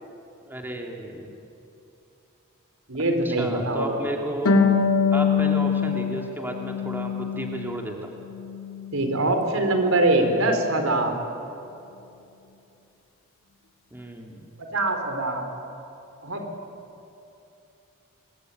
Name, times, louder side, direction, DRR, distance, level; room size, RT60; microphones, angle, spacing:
voice 1, 0.4-1.3 3.2-4.6 5.1-8.1 13.9-14.4, right 1 dB, 10° right, 1 dB, 2.4 m, -33 dB
voice 2, 2.9-4.0 8.9-11.1 14.7-15.5 16.2-16.4, right 2 dB, 80° right, 5 dB, 4.2 m, -23 dB
Harp, 4.4-7.8 8.2-9.3, left 5 dB, 70° left, 2.8 m, -24 dB
26.0 x 22.5 x 9.2 m, 2.8 s
head